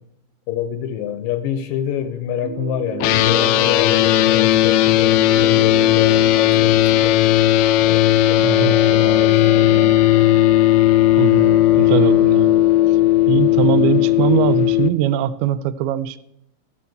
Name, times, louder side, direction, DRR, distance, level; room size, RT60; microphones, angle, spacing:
voice 1, 0.5-7.3 7.8-10.0, left 10 dB, 75° left, 11 dB, 2.3 m, -27 dB
sound 1, 2.4-14.4, right 3 dB, 65° right, 2.4 m, -33 dB
sound 2, 3.0-14.9, left 14 dB, 90° left, 2.5 m, -15 dB
voice 2, 8.4-8.8 11.2-13.0 13.3-16.2, right 11 dB, 85° right, 15 dB, 2.5 m, -21 dB
13.5 x 5.9 x 7.9 m, 0.76 s
omnidirectional pair, 4.4 m